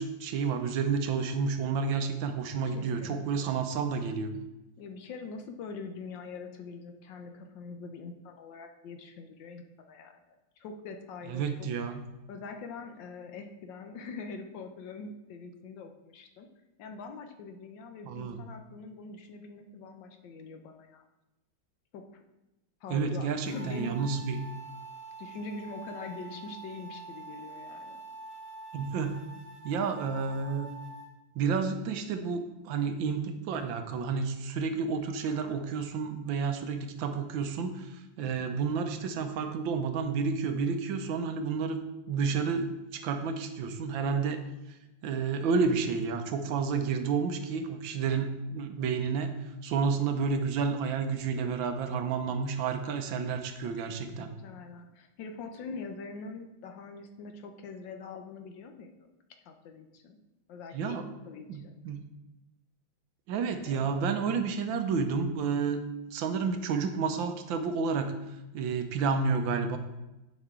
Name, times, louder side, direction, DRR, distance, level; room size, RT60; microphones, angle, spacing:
voice 1, 0.0-4.3 11.3-12.0 18.1-18.4 22.9-24.4 28.7-29.2 29.6-30.7 31.3-37.9 38.2-41.8 42.1-44.4 45.0-49.3 49.6-54.3 60.7-61.0 61.5-62.0 63.3-65.8 66.1-68.1 68.5-69.8, right 5 dB, 75° right, 7 dB, 1.4 m, -30 dB
voice 2, 2.7-3.6 4.8-11.7 12.3-16.5 16.8-21.0 21.9-22.2 22.8-24.1 25.2-28.0 38.2-38.6 54.1-58.9 59.4-60.2 60.5-61.8 63.6-63.9, left 4 dB, 70° left, 5 dB, 1.4 m, -43 dB
sound 1, 23.4-31.1, right 3 dB, 45° left, 1.8 m, -46 dB
10.0 x 5.2 x 3.6 m, 0.99 s
omnidirectional pair, 2.2 m